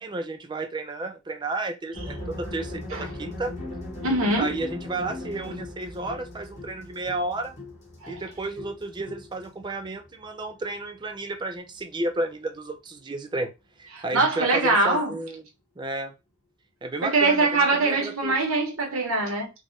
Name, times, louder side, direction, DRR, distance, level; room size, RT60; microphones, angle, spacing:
voice 1, 0.0-3.5 4.4-7.6 8.1-13.5 13.8-15.4 15.8-16.1 16.8-18.4, right 2 dB, 20° right, 0.3 m, -32 dB
sound 1, 1.9-10.8, left 2 dB, 35° left, 0.9 m, -38 dB
voice 2, 4.0-4.6 8.0-8.1 13.9-15.1 17.0-19.5, right 3 dB, 75° right, 1.0 m, -23 dB
3.3 x 2.1 x 2.5 m
head